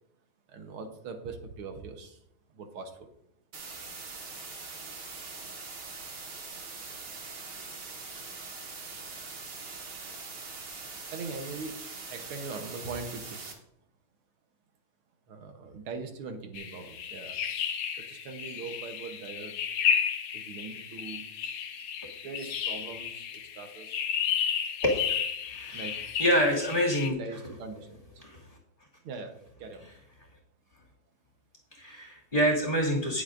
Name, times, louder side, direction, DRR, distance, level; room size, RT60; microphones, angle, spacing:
voice 1, 0.5-2.2 2.5-3.1 11.1-11.8 12.1-13.6 15.3-17.4 18.0-19.5 20.3-21.3 22.2-24.0 25.7-26.0 27.2-28.2 29.0-29.9, right 4 dB, 85° right, 6 dB, 2.0 m, -41 dB
sound 1, 3.5-13.5, right 4 dB, 55° right, 2.1 m, -42 dB
sound 2, 16.5-27.1, left 8 dB, 75° left, 1.5 m, -33 dB
voice 2, 25.5-25.8 26.2-27.2 28.2-28.4 31.7-33.2, equal, 25° left, -3 dB, 2.5 m, -26 dB
19.0 x 7.1 x 2.6 m, 0.74 s
omnidirectional pair, 2.3 m